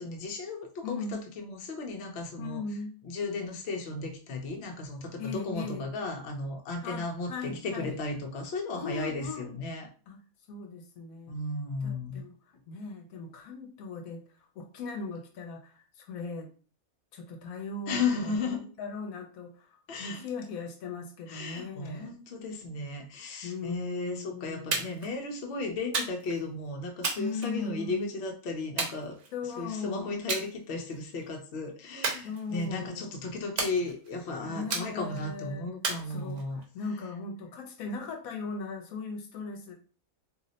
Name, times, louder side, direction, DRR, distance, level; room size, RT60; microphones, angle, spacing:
voice 1, 0.0-2.6 3.0-9.9 11.3-12.2 17.9-18.6 19.9-20.2 21.3-29.2 29.6-36.6, left 3 dB, 55° left, 2 dB, 0.8 m, -35 dB
voice 2, 0.8-1.2 2.4-2.9 5.2-5.9 6.8-8.0 8.7-9.6 10.1-10.2 10.5-11.3 11.8-12.3 12.7-14.2 14.6-16.5 17.1-18.3 18.8-22.1 23.4-24.8 27.2-28.1 29.3-30.2 32.2-33.2 34.4-35.7 36.1-39.7, left 4 dB, 80° left, 4 dB, 1.1 m, -38 dB
sound 1, 24.7-25.1 25.9-26.4 27.0-28.0 28.8-29.6 30.3-30.5 30.9-31.2 32.0-32.8 33.6-34.2 34.7-35.2 35.8-36.6, right 4 dB, 60° right, 1.0 m, -34 dB
2.7 x 2.0 x 3.8 m, 0.38 s
omnidirectional pair, 1.5 m